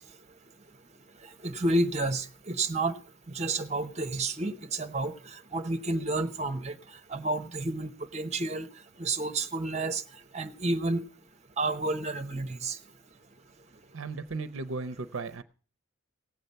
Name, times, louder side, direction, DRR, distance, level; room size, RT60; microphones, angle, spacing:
voice 1, 1.4-2.9 3.3-5.1 5.5-6.7 7.1-8.6 9.0-10.0 10.3-11.0 11.6-12.8, right 2 dB, 30° right, 0.9 m, -30 dB
voice 2, 13.9-15.4, right 3 dB, 70° right, 0.6 m, -36 dB
18.0 x 7.9 x 5.5 m
head